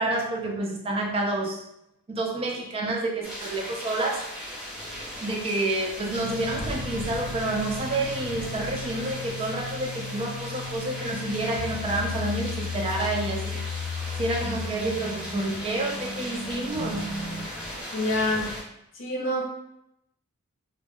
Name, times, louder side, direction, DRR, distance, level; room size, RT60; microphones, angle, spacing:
voice 1, 0.0-1.6 2.1-4.3 5.2-13.7 14.2-17.1, right 2 dB, 25° right, 0 dB, 0.3 m, -29 dB
sound 1, 3.2-18.6, equal, 5° right, 0.8 m, -37 dB
sound 2, 6.2-17.5, left 4 dB, 80° right, 0.6 m, -36 dB
voice 2, 17.9-18.5 18.9-19.4, left 1 dB, 55° left, -2 dB, 0.6 m, -26 dB
2.1 x 2.0 x 3.5 m, 0.81 s
head